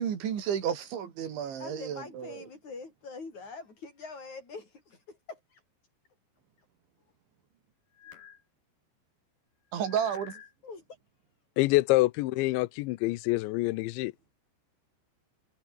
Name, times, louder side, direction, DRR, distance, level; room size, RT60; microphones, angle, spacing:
voice 1, 0.0-2.5 9.7-10.4, right 8 dB, 75° right, 5.4 m, -32 dB
voice 2, 1.6-5.4 10.6-10.8, left 4 dB, 40° left, 8.3 m, -44 dB
sound 1, 7.9-8.4 9.7-10.5, left 8 dB, 65° left, 5.1 m, -49 dB
voice 3, 11.6-14.1, left 20 dB, 85° left, 3.0 m, -26 dB
omnidirectional pair, 5.3 m